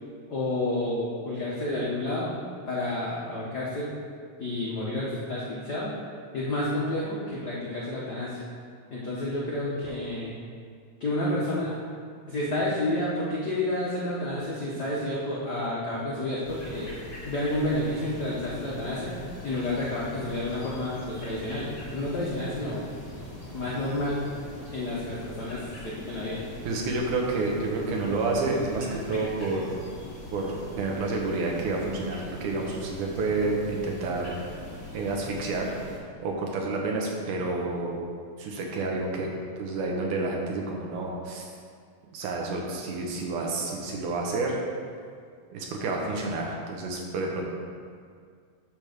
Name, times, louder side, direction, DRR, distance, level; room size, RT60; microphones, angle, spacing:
voice 1, 0.3-2.3 2.7-3.9 4.4-5.9 6.3-8.4 8.9-10.3 11.0-11.7 12.3-16.9 17.3-19.2 19.4-22.8 23.5-24.2 24.7-26.4, left 1 dB, 85° left, -6 dB, 0.9 m, -30 dB
sound 1, 16.4-36.0, left 1 dB, 40° left, 2.8 m, -42 dB
voice 2, 26.6-29.7 30.3-34.3 34.9-35.7 36.2-38.0 38.4-39.3 39.6-41.5 42.1-44.6 45.5-47.4, right 3 dB, 90° right, -1 dB, 2.6 m, -29 dB
8.9 x 3.5 x 6.5 m, 2.1 s
omnidirectional pair, 3.5 m